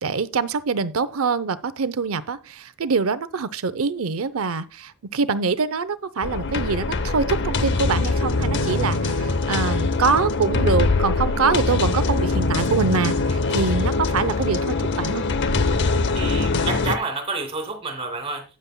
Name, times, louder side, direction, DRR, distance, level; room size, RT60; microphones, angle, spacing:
voice 1, 0.0-15.3, right 4 dB, 70° right, 0.6 m, -24 dB
sound 1, 6.2-17.0, left 3 dB, 55° left, 0.7 m, -23 dB
voice 2, 16.1-18.4, right 3 dB, 25° right, 2.6 m, -29 dB
12.5 x 9.5 x 2.2 m
head